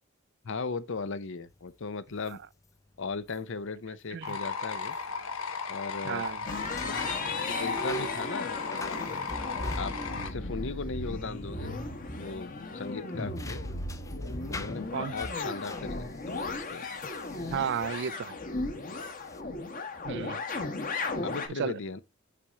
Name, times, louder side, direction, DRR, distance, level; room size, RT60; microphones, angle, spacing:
voice 1, 0.4-2.4 3.0-5.0 5.7-6.3 6.8-7.1 7.4-9.1 9.8-10.0 10.2-11.8 12.1-13.6 14.5-16.8 18.7-19.1 21.2-22.0, left 4 dB, 60° left, 0.7 m, -38 dB
sound 1, 1.5-18.4 19.0-19.4, left 2 dB, 15° left, 0.5 m, -45 dB
sound 2, 4.2-10.3, left 5 dB, 85° left, 1.1 m, -36 dB
voice 2, 6.1-6.4 14.9-15.1 17.5-18.4 20.0-20.4 21.6-21.7, right 7 dB, 55° right, 0.4 m, -32 dB
sound 3, 6.5-21.5, left 2 dB, 40° left, 1.3 m, -36 dB
5.9 x 4.9 x 4.1 m
head